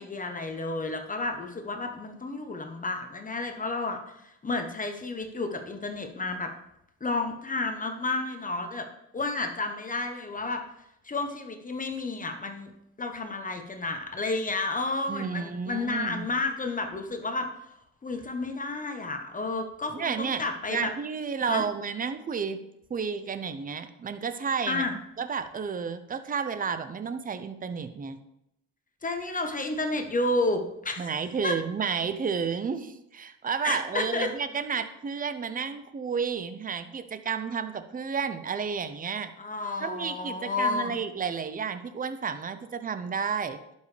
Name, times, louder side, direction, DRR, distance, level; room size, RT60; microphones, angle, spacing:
voice 1, 0.0-6.5 7.0-8.9 9.1-10.6 11.0-12.7 13.0-17.5 18.0-20.9 21.5-21.6 24.7-24.9 29.0-31.1 31.4-31.5 33.6-34.3 39.4-41.0, left 2 dB, 25° left, 5 dB, 1.0 m, -31 dB
voice 2, 15.1-16.3 19.9-20.4 20.7-22.6 22.9-24.9 25.2-28.2 31.0-39.3 39.8-43.6, right 6 dB, 30° right, 10 dB, 0.7 m, -31 dB
11.5 x 5.4 x 3.3 m, 0.82 s
cardioid pair, 90°, 30 cm